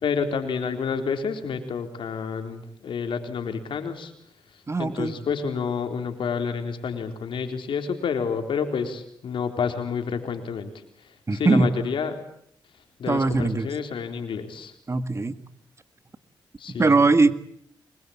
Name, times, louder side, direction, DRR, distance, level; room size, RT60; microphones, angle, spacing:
voice 1, 0.0-4.1 4.8-10.7 11.3-12.1 13.0-14.7 16.6-17.0, left 6 dB, 75° left, 6 dB, 4.0 m, -29 dB
voice 2, 4.7-5.2 11.3-11.7 13.1-13.7 14.9-15.4 16.7-17.3, right 3 dB, 35° right, 12 dB, 2.0 m, -20 dB
24.5 x 21.5 x 8.8 m, 0.66 s
cardioid pair, 70°, 9 cm